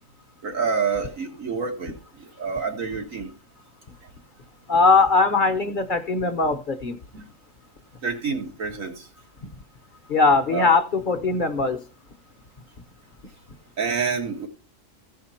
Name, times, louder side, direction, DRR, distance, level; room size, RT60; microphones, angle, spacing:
voice 1, 0.4-3.3 7.1-7.2 8.0-9.0 10.5-10.7 13.8-14.5, right 5 dB, 90° right, 2.1 m, -28 dB
voice 2, 4.7-7.0 9.4-9.5 10.1-11.8, left 4 dB, 45° left, 0.9 m, -20 dB
15.0 x 5.7 x 4.3 m
omnidirectional pair, 1.3 m